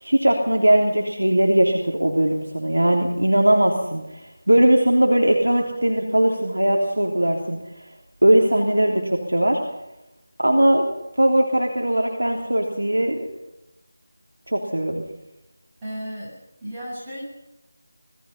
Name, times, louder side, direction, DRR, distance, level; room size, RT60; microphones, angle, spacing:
voice 1, 0.0-7.6 8.2-9.6 10.4-10.9 11.2-13.2 14.5-15.0, right 1 dB, 80° right, 1 dB, 3.4 m, -19 dB
voice 2, 15.8-16.3 16.6-17.2, equal, 10° right, -9 dB, 7.3 m, -33 dB
27.0 x 18.5 x 5.7 m, 0.89 s
figure-of-eight pair, 165°, 0 cm